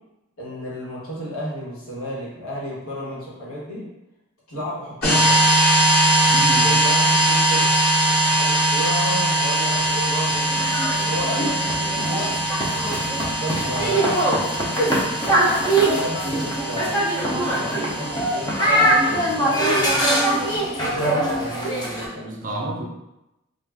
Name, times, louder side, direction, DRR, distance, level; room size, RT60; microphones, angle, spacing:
voice 1, 0.4-3.8 4.5-5.5 6.6-7.7 8.1-10.5 11.1-12.3 12.9-14.8 15.6-16.9 17.3-20.0 20.9-22.4, equal, 85° left, -7 dB, 1.2 m, -33 dB
sound 1, 5.0-20.6, right 1 dB, 45° left, 0.9 m, -22 dB
voice 2, 6.3-6.8 16.2-16.4 22.2-22.9, right 1 dB, 40° right, 0 dB, 0.4 m, -30 dB
sound 2, 9.7-22.1, right 1 dB, 20° left, 0.4 m, -22 dB
2.3 x 2.3 x 3.3 m, 0.92 s
head